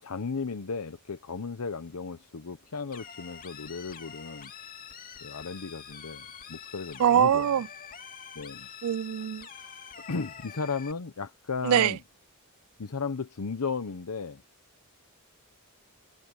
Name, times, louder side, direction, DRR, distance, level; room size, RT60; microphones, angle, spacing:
voice 1, 0.0-4.5 5.2-7.5 8.3-8.7 9.5-9.7 10.1-12.0 12.8-14.4, left 4 dB, 85° left, 0.8 m, -35 dB
sound 1, 2.9-10.9, left 7 dB, 40° left, 2.8 m, -46 dB
voice 2, 7.0-7.7 8.8-9.5 11.6-12.0, right 9 dB, 70° right, 0.3 m, -23 dB
head